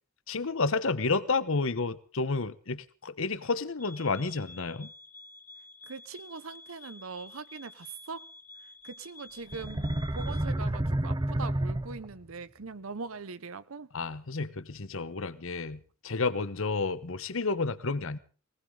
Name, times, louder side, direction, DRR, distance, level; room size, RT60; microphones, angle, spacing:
voice 1, 0.3-4.9 13.9-18.2, left 3 dB, 70° left, 1.1 m, -31 dB
sound 1, 3.8-10.5, left 2 dB, 50° left, 4.3 m, -50 dB
voice 2, 5.9-8.3 8.8-13.9, right 4 dB, 70° right, 0.8 m, -41 dB
sound 2, 9.5-12.3, right 1 dB, 20° right, 0.9 m, -30 dB
19.5 x 19.0 x 3.8 m
head